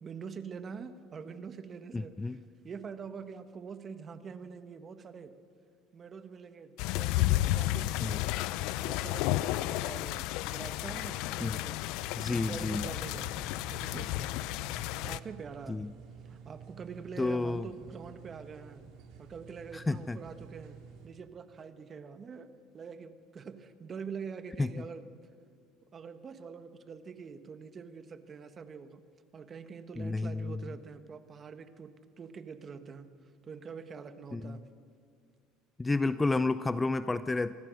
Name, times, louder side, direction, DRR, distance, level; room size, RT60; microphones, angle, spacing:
voice 1, 0.0-2.4 2.6-5.3 5.9-8.4 8.8-11.8 12.3-13.3 13.7-14.3 14.8-15.9 16.2-18.9 19.2-20.8 21.0-25.0 25.9-29.0 29.3-31.9 32.2-33.1 33.4-34.6, right 6 dB, 30° right, 10 dB, 1.5 m, -45 dB
voice 2, 1.9-2.4 8.0-8.2 11.4-11.6 12.2-12.9 15.7-15.9 17.2-17.7 19.7-20.2 24.6-24.7 30.0-30.7 34.3-34.6 35.8-37.5, left 3 dB, 15° left, 14 dB, 0.5 m, -31 dB
sound 1, 6.8-15.2, left 17 dB, 70° left, 0.5 m, -32 dB
sound 2, 12.0-21.1, right 6 dB, 70° right, 3.6 m, -51 dB
25.5 x 18.5 x 6.5 m, 2.1 s
supercardioid pair, 115°, 0 cm